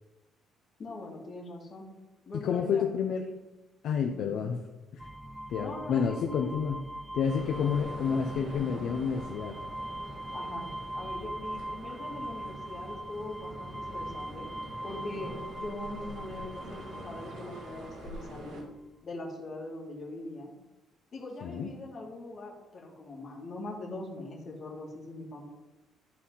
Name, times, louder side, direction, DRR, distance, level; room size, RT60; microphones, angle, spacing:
voice 1, 0.8-1.9 2.3-3.2 4.1-4.3 5.6-6.6 10.3-10.6 10.9-14.5 14.8-18.7 19.0-20.5 21.1-25.4, left 2 dB, 30° left, -2 dB, 2.2 m, -41 dB
voice 2, 2.4-3.2 3.8-4.6 4.9-5.1 5.5-6.8 7.1-9.6 21.4-21.7, left 7 dB, 55° left, 3 dB, 0.7 m, -29 dB
sound 1, 5.0-18.4, right 1 dB, 5° right, 0.4 m, -41 dB
sound 2, 7.2-18.6, right 1 dB, 70° right, 2.9 m, -45 dB
12.5 x 4.3 x 5.6 m, 1.0 s
cardioid pair, 170°, 0 cm